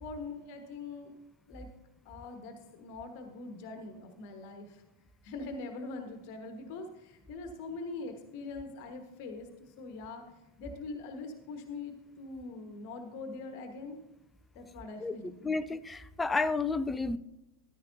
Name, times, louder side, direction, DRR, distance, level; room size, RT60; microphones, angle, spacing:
voice 1, 0.0-1.1 1.5-1.7 2.0-4.8 5.2-9.5 9.8-10.2 10.6-14.0 14.5-15.5, left 3 dB, 45° left, 1.3 m, -43 dB
voice 2, 15.4-17.2, left 3 dB, 10° left, 0.5 m, -31 dB
14.5 x 12.5 x 2.7 m
figure-of-eight pair, 90°, 0 cm